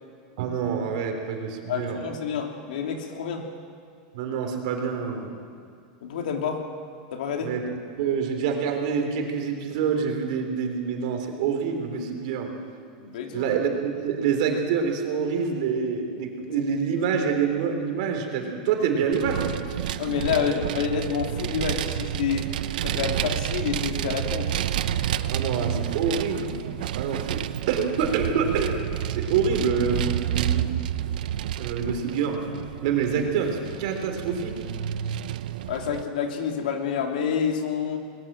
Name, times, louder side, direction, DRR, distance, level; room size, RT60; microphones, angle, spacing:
voice 1, 0.4-2.1 4.1-5.3 7.4-7.6 8.0-12.5 13.3-19.8 20.4-20.5 25.3-26.5 26.9-28.7 29.1-30.7 31.6-32.4 32.8-34.6, right 6 dB, 60° right, 4 dB, 3.7 m, -26 dB
voice 2, 1.7-3.5 6.0-6.6 7.1-7.5 13.0-13.5 20.0-22.5 22.8-24.7 35.7-38.0, left 7 dB, 85° left, 3 dB, 3.1 m, -28 dB
Vehicle, 19.1-36.0, right 10 dB, 85° right, 0.8 m, -30 dB
21.5 x 20.5 x 7.6 m, 2.3 s
supercardioid pair, 165°, 4 cm